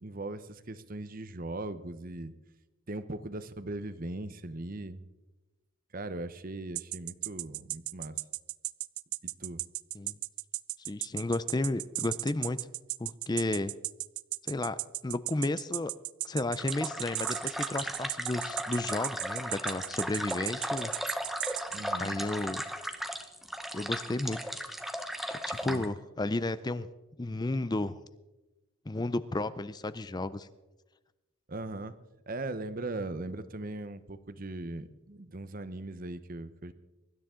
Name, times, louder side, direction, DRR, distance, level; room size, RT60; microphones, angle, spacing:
voice 1, 0.0-2.3 2.9-5.0 5.9-8.2 9.4-9.6 21.7-22.2 25.7-25.9 31.5-32.0 32.3-36.7, right 2 dB, 40° right, 13 dB, 0.8 m, -39 dB
sound 1, 6.8-21.8, right 20 dB, 85° right, 0.4 m, -35 dB
voice 2, 10.9-12.6 13.0-13.7 14.4-14.8 15.0-15.9 16.2-20.9 22.0-22.6 23.7-24.4 25.4-26.9 27.2-28.0 28.9-30.5, left 2 dB, 20° left, 14 dB, 0.4 m, -32 dB
sound 2, 16.6-25.9, equal, ahead, 0.9 m, -36 dB
23.5 x 12.5 x 3.8 m, 1.1 s
head